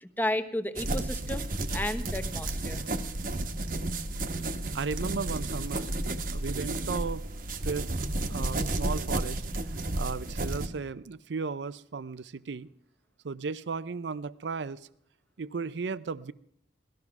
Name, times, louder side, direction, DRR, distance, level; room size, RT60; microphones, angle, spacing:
voice 1, 0.0-1.5 1.7-2.8, left 1 dB, 10° left, 9 dB, 0.9 m, -32 dB
sound 1, 0.8-10.7, right 2 dB, 50° right, 1.1 m, -32 dB
voice 2, 4.7-5.9 6.3-7.3 7.6-7.9 8.3-12.7 13.2-14.9 15.4-16.3, right 4 dB, 85° right, 17 dB, 0.5 m, -35 dB
18.5 x 13.0 x 5.9 m, 0.70 s
head